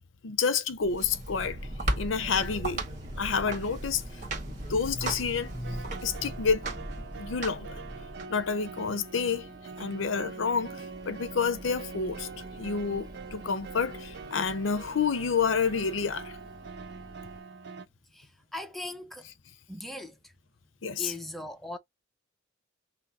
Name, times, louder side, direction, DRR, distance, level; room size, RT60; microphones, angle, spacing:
voice 1, 0.2-1.6 2.0-2.8 3.2-4.2 4.6-5.5 6.0-6.7 7.2-7.8 8.3-9.5 9.8-12.3 12.6-16.4 20.8-21.1, left 5 dB, 90° left, 0.7 m, -29 dB
sound 1, 0.8-8.3, right 1 dB, 40° right, 1.6 m, -36 dB
sound 2, 1.6-17.4, right 1 dB, 20° right, 1.2 m, -50 dB
sound 3, 5.4-17.9, right 4 dB, 60° right, 0.5 m, -44 dB
voice 2, 18.1-19.3 19.7-20.2 21.0-21.8, left 1 dB, ahead, 0.6 m, -39 dB
5.8 x 2.0 x 4.1 m
head